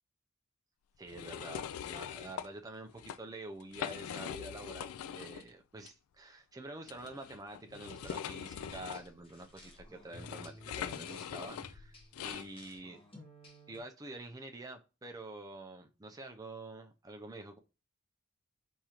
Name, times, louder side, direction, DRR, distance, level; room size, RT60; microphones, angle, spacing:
voice 1, 1.0-13.0 13.7-17.6, right 2 dB, 15° right, 0.5 m, -47 dB
sound 1, 1.1-2.5 2.9-3.2 3.6-5.5 5.8-5.9 6.9-12.5, left 9 dB, 85° left, 0.3 m, -42 dB
sound 2, 7.7-13.8, left 1 dB, 25° left, 1.1 m, -56 dB
4.8 x 3.6 x 2.9 m
head